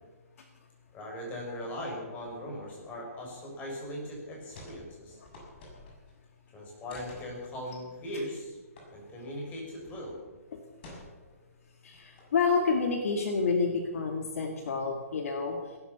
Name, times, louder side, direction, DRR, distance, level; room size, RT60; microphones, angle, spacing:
voice 1, 0.9-5.2 6.5-8.6 8.9-10.2, equal, 20° left, -2 dB, 6.1 m, -39 dB
sound 1, 4.5-4.8 5.1-6.2 6.9-7.3 8.8-8.9 9.2-9.3 9.9-10.1 10.8-11.4 11.9-12.4, left 1 dB, 40° left, 6.6 m, -49 dB
voice 2, 11.8-15.6, left 4 dB, 60° left, 4 dB, 2.2 m, -29 dB
17.5 x 11.5 x 7.0 m, 1.2 s
hypercardioid pair, 145°, 8 cm